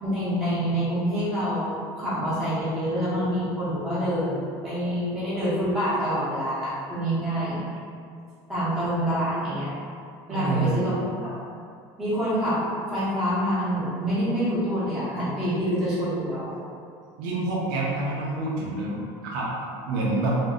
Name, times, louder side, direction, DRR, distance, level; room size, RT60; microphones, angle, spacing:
voice 1, 0.0-7.6 8.5-9.7 10.3-10.9 11.2-11.4 12.0-16.5, equal, 5° right, -13 dB, 0.9 m, -26 dB
voice 2, 10.3-10.9 17.2-20.3, right 2 dB, 70° right, -5 dB, 0.6 m, -28 dB
2.6 x 2.1 x 3.6 m, 2.3 s
cardioid pair, 175°, 11 cm